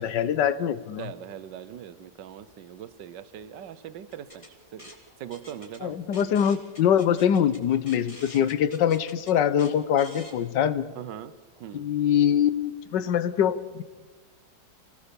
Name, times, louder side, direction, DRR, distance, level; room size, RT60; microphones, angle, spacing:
voice 1, 0.0-1.1 5.8-10.9 11.7-13.8, left 9 dB, 80° left, 15 dB, 1.5 m, -24 dB
voice 2, 1.0-4.9 5.2-6.0 8.3-8.6 10.9-11.9, right 9 dB, 80° right, 14 dB, 1.6 m, -41 dB
sound 1, 4.1-10.4, left 1 dB, 20° left, 2.6 m, -48 dB
27.5 x 17.5 x 7.0 m, 1.3 s
omnidirectional pair, 1.9 m